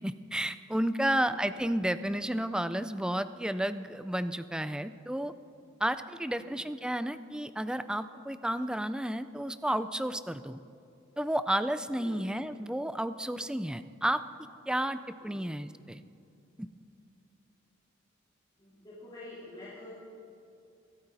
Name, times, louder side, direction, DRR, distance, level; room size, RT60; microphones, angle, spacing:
voice 1, 0.0-5.3 5.8-10.6 11.2-14.2 14.7-15.0 15.2-16.0 16.6-16.7, right 1 dB, 5° right, 12 dB, 0.4 m, -32 dB
voice 2, 12.0-12.3 15.2-15.5 18.6-19.9, left 2 dB, 20° left, -10 dB, 3.6 m, -48 dB
23.5 x 13.0 x 4.1 m, 2.5 s
head